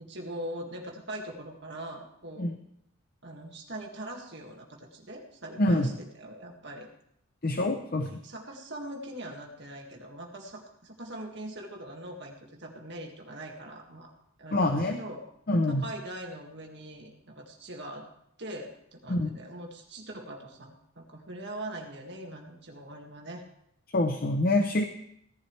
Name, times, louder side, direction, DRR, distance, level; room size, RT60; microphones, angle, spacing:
voice 1, 0.0-2.5 3.2-6.9 7.9-14.1 14.4-15.2 15.7-18.1 18.4-23.4, right 1 dB, 50° right, 1 dB, 2.1 m, -42 dB
voice 2, 5.6-5.9 7.4-8.1 14.5-15.0 15.5-15.9 19.1-19.3 23.9-24.8, left 1 dB, 45° left, 6 dB, 0.7 m, -25 dB
16.5 x 11.5 x 3.3 m, 0.75 s
head